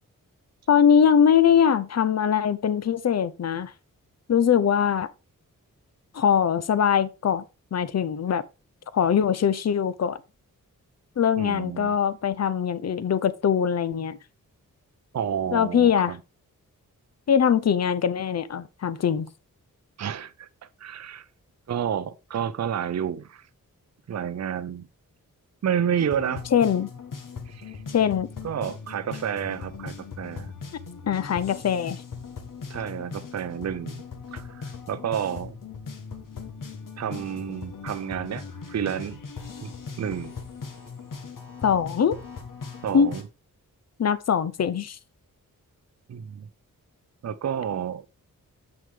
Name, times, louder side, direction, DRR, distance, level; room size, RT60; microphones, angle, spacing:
voice 1, 0.7-3.7 4.3-5.1 6.1-7.4 7.7-8.4 8.9-10.2 11.2-14.2 15.5-16.1 17.3-19.3 26.5-26.9 27.9-28.3 31.1-32.0 41.6-42.2 42.9-43.1 44.0-45.0, left 8 dB, 50° left, 0.7 m, -22 dB
voice 2, 11.4-12.0 15.1-16.2 20.0-20.5 20.8-21.3 21.7-23.4 24.1-24.9 25.6-26.4 27.5-27.8 28.4-30.5 32.7-34.0 34.3-35.6 37.0-39.2 39.6-39.7 40.0-40.3 42.8-43.2 46.1-46.5 47.2-48.0, right 8 dB, 50° right, 0.6 m, -30 dB
sound 1, 26.0-43.2, left 5 dB, 65° left, 1.6 m, -39 dB
8.0 x 6.2 x 3.6 m
cardioid pair, 65°, 34 cm